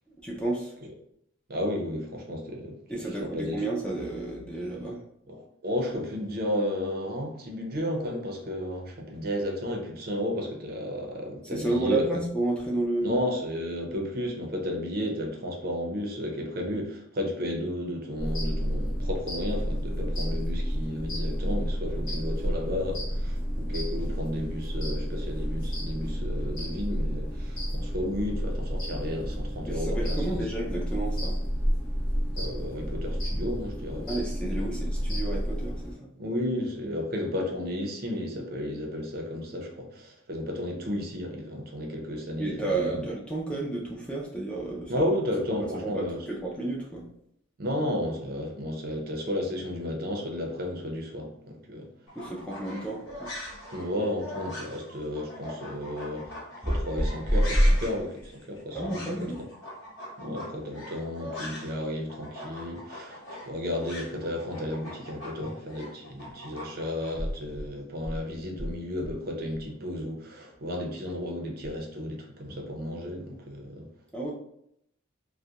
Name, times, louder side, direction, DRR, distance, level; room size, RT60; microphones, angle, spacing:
voice 1, 0.2-0.8 2.9-5.0 11.4-13.2 29.7-31.4 34.1-36.1 42.4-45.1 45.5-47.1 52.2-53.3 56.6-56.8 57.3-57.7 58.7-59.4 74.1-74.3, right 1 dB, 5° left, -3 dB, 0.3 m, -30 dB
voice 2, 1.5-3.0 3.3-3.6 5.3-12.0 13.0-30.4 32.4-34.2 36.2-43.1 44.9-46.2 47.6-51.9 53.7-59.0 60.2-73.9, left 1 dB, 50° right, 1 dB, 0.5 m, -33 dB
sound 1, 18.2-35.9, equal, 45° left, 0.8 m, -30 dB
sound 2, 52.1-61.8 62.1-67.1, left 1 dB, 80° left, 1.0 m, -41 dB
2.3 x 2.1 x 2.7 m, 0.75 s
head